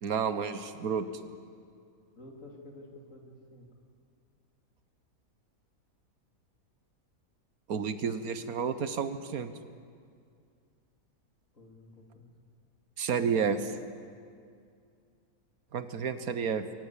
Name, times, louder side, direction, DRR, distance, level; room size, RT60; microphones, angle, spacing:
voice 1, 0.0-1.1 7.7-9.5 13.0-13.7 15.7-16.6, right 6 dB, 85° right, 10 dB, 1.6 m, -30 dB
voice 2, 2.1-3.7 11.5-12.3, left 1 dB, 65° left, 0 dB, 3.4 m, -51 dB
22.0 x 18.5 x 8.4 m, 2.3 s
omnidirectional pair, 1.5 m